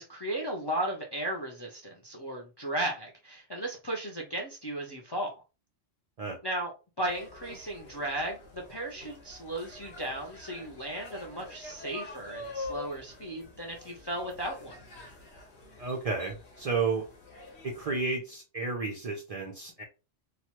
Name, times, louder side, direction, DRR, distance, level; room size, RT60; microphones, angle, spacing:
voice 1, 0.0-5.3 6.4-6.7 7.0-14.8, right 1 dB, 45° left, 0 dB, 0.3 m, -35 dB
sound 1, 7.0-18.0, left 2 dB, 65° left, 1.2 m, -46 dB
voice 2, 15.8-17.1 17.6-19.8, right 4 dB, 55° right, 0 dB, 0.4 m, -32 dB
3.0 x 2.2 x 2.9 m, 0.31 s
omnidirectional pair, 1.2 m